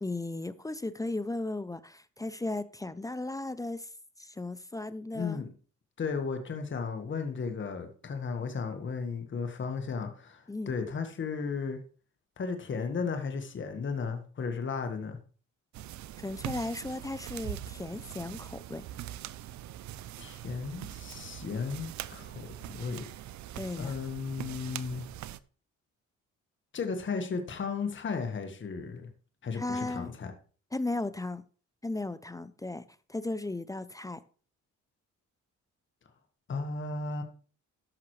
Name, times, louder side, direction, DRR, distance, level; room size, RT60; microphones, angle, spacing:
voice 1, 0.0-3.9 4.2-5.4 10.5-10.7 16.2-18.8 23.5-23.9 29.5-30.1 30.7-31.4 31.8-32.8 33.1-34.2, left 2 dB, 10° left, 0.5 m, -36 dB
voice 2, 5.1-5.5 6.0-11.8 12.4-15.2 20.2-23.1 23.8-25.1 26.7-29.1 29.4-30.3 36.5-37.2, left 5 dB, 40° left, 1.5 m, -35 dB
sound 1, 15.7-25.4, right 12 dB, 70° right, 0.5 m, -42 dB
13.5 x 5.9 x 3.2 m
cardioid pair, 90°, 30 cm